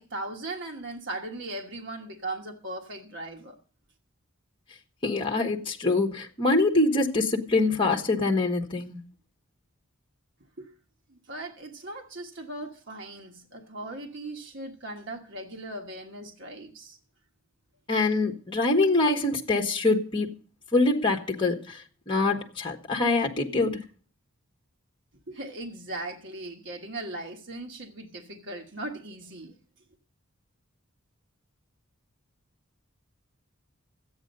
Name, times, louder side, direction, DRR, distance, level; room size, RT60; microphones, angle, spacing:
voice 1, 0.0-3.6 10.6-10.7 11.1-17.0 25.3-29.5, right 2 dB, 55° right, 1.4 m, -38 dB
voice 2, 5.0-9.0 17.9-20.3 20.7-21.8 22.1-23.8, left 2 dB, 25° left, 1.3 m, -24 dB
13.0 x 8.7 x 5.3 m
head